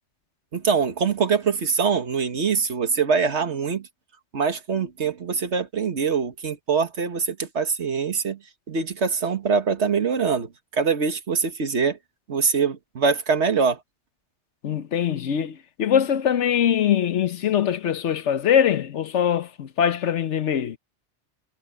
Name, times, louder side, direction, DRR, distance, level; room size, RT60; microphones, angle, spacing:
voice 1, 0.5-3.9 4.3-8.4 8.7-12.0 12.3-13.8, right 5 dB, 75° right, 1.8 m, -23 dB
voice 2, 14.6-20.8, left 9 dB, 85° left, 1.2 m, -22 dB
omnidirectional pair, 1.2 m